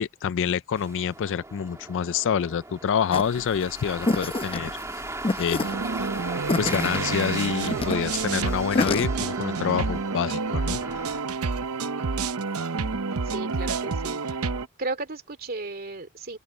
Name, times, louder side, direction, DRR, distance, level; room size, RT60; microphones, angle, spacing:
voice 1, 0.0-4.8 5.4-5.6 6.6-10.8, left 7 dB, 60° left, 0.4 m, -27 dB
sound 1, 0.8-11.9, right 2 dB, 15° right, 2.5 m, -37 dB
sound 2, 3.1-9.1, left 2 dB, 25° left, 0.7 m, -28 dB
sound 3, 5.6-14.7, right 4 dB, 75° right, 0.8 m, -29 dB
voice 2, 13.3-14.4 14.8-16.4, right 3 dB, 45° right, 2.5 m, -34 dB
open air
head